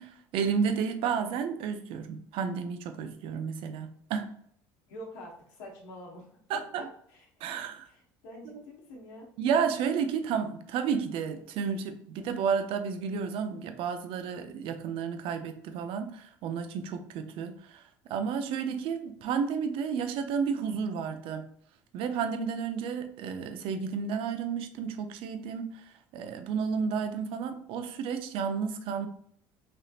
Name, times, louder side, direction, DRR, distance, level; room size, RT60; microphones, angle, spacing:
voice 1, 0.0-4.4 6.5-6.8 7.4-7.8 8.5-8.6 9.4-21.5 21.9-29.1, right 6 dB, 65° right, 8 dB, 0.5 m, -32 dB
voice 2, 4.9-6.8 7.1-7.3 7.9-9.3, left 1 dB, 90° left, -1 dB, 1.0 m, -46 dB
3.4 x 2.8 x 2.3 m, 0.64 s
supercardioid pair, 100°, 10 cm